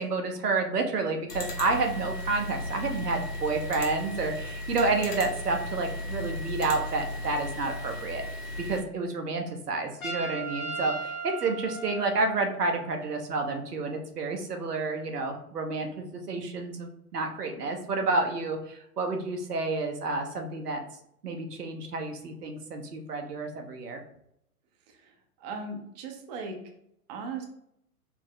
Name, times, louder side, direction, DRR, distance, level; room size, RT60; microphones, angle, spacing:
voice 1, 0.0-8.2 8.6-20.8 21.2-24.0, right 3 dB, 85° right, 3 dB, 0.9 m, -30 dB
sound 1, 1.3-8.8, left 1 dB, 85° left, 1.0 m, -36 dB
Trumpet, 10.0-12.7, right 3 dB, 65° left, 1.2 m, -37 dB
voice 2, 24.9-26.6 27.1-27.5, right 4 dB, 30° right, 3 dB, 0.5 m, -38 dB
4.4 x 2.0 x 3.8 m, 0.74 s
hypercardioid pair, 115°, 46 cm